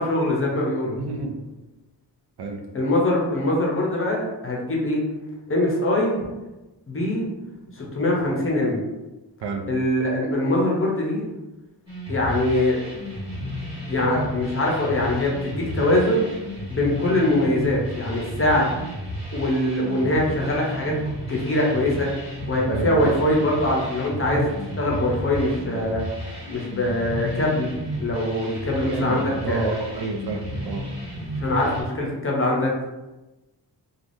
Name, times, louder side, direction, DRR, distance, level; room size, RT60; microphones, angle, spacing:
voice 1, 0.0-1.0 2.7-5.0 5.5-6.3 6.9-7.2 7.7-8.8 9.7-11.3 12.1-12.9 13.8-16.3 16.7-18.7 19.3-20.9 21.3-22.1 22.5-26.0 26.5-27.7 28.0-29.7 31.4-32.7, left 1 dB, 30° left, -2 dB, 0.7 m, -23 dB
voice 2, 0.9-1.4 2.4-2.6 9.4-9.7 22.7-23.1 28.9-30.9, right 3 dB, 70° right, 2 dB, 0.6 m, -30 dB
sound 1, 11.9-31.8, equal, 15° right, 1.4 m, -33 dB
3.3 x 2.3 x 2.6 m, 1.1 s
wide cardioid pair, 125°, 41 cm